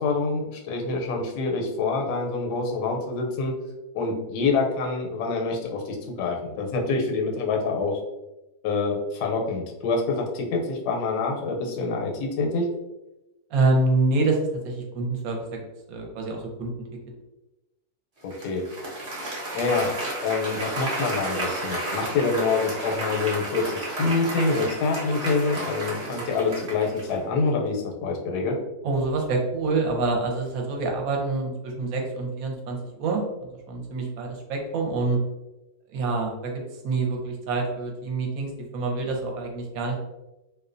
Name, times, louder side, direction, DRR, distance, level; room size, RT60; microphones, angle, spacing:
voice 1, 0.0-3.5 3.9-8.0 8.6-12.7 18.2-18.6 19.5-19.9 20.2-28.6, left 4 dB, 85° left, 1 dB, 1.1 m, -26 dB
voice 2, 13.5-14.4 14.6-15.4 15.9-16.7 28.8-35.2 35.9-40.0, right 3 dB, 75° right, 1 dB, 1.0 m, -26 dB
Applause, 18.3-27.2, right 1 dB, 45° right, 0.5 m, -32 dB
2.6 x 2.1 x 2.4 m, 0.99 s
omnidirectional pair, 1.7 m